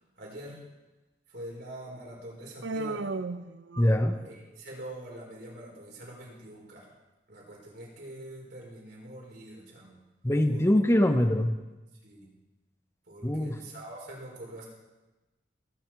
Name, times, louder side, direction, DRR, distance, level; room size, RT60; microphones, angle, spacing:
voice 1, 0.2-0.6 1.3-3.2 4.2-6.9 7.3-10.0 10.5-10.7 12.0-12.3 13.0-14.6, right 1 dB, 65° right, -3 dB, 4.9 m, -44 dB
Human voice, 2.6-4.3, right 3 dB, 80° right, 0.5 m, -35 dB
voice 2, 3.8-4.2 10.2-11.6 13.2-13.6, left 1 dB, 15° left, 7 dB, 0.7 m, -23 dB
19.0 x 9.5 x 4.6 m, 1.1 s
head